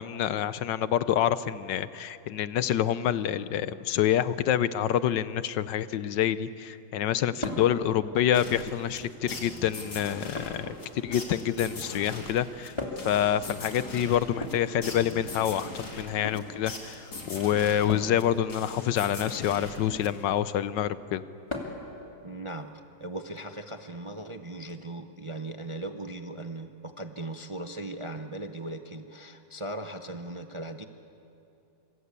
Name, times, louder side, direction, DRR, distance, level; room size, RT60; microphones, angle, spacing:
voice 1, 0.0-12.8 13.0-21.2, left 10 dB, 80° left, 14 dB, 1.4 m, -27 dB
sound 1, 7.4-7.7 8.8-9.3 10.3-11.4 12.8-13.2 14.3-15.4 16.1-16.4 17.9-18.2 19.7-20.1 21.5-21.9 23.4-23.5 24.7-24.8, left 2 dB, 15° left, 3.0 m, -38 dB
sound 2, 8.3-20.5, left 2 dB, 60° left, 3.8 m, -41 dB
voice 2, 22.2-22.7 23.0-30.8, right 2 dB, 30° right, 6 dB, 0.6 m, -38 dB
26.0 x 26.0 x 8.3 m, 2.8 s
omnidirectional pair, 1.9 m